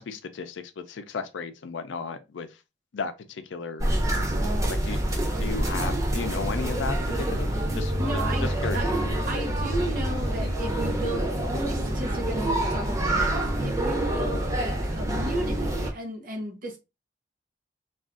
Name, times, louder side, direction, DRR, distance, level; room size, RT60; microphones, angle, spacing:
voice 1, 0.0-2.5 2.9-3.9 4.7-5.1 5.4-7.9 8.4-8.9, left 4 dB, 80° left, 0.5 m, -34 dB
sound 1, 3.8-15.9, right 1 dB, 15° right, 0.5 m, -26 dB
voice 2, 8.0-8.9 9.3-16.8, right 1 dB, 50° right, 0.8 m, -35 dB
2.4 x 2.4 x 3.7 m
head